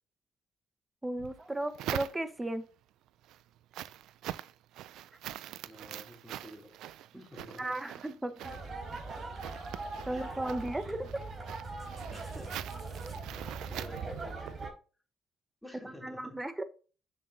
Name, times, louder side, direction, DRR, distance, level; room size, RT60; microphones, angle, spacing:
voice 1, 1.0-2.6 7.6-8.5 10.1-11.2 15.8-16.6, right 1 dB, 15° right, 10 dB, 1.1 m, -35 dB
sound 1, 1.2-2.6 3.1-14.7, right 12 dB, 85° right, 0.4 m, -44 dB
voice 2, 5.6-6.7 7.1-7.7 10.1-10.6 12.1-12.5 13.3-14.7 15.6-16.4, left 1 dB, ahead, -1 dB, 3.2 m, -50 dB
sound 2, 8.4-14.7, right 3 dB, 40° right, 3.8 m, -41 dB
7.8 x 7.1 x 2.8 m, 0.36 s
cardioid pair, 85°, 0 cm